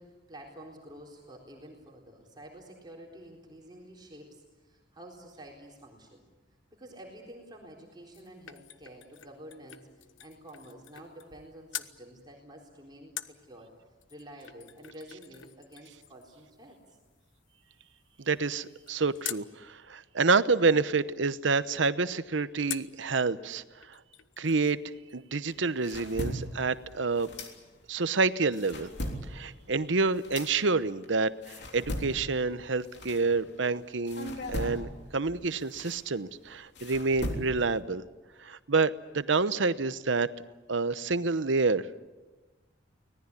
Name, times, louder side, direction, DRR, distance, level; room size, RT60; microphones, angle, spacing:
voice 1, 0.0-6.2 6.7-13.7 14.1-16.8, right 1 dB, 25° right, -1 dB, 4.0 m, -49 dB
sound 1, 7.8-11.4 11.7-12.0 13.2-19.5 22.7-23.0 23.5-23.6 23.8-24.8 25.1-25.2, left 12 dB, 75° left, 1.0 m, -45 dB
voice 2, 18.3-24.0 24.4-24.8 25.1-27.3 27.9-28.9 29.3-38.0 38.4-40.3 40.7-42.0, right 4 dB, 75° right, 14 dB, 0.9 m, -28 dB
sound 2, 25.5-28.0 28.4-33.7 34.1-37.8, equal, 60° left, 3.4 m, -39 dB
25.0 x 18.5 x 9.8 m, 1.2 s
head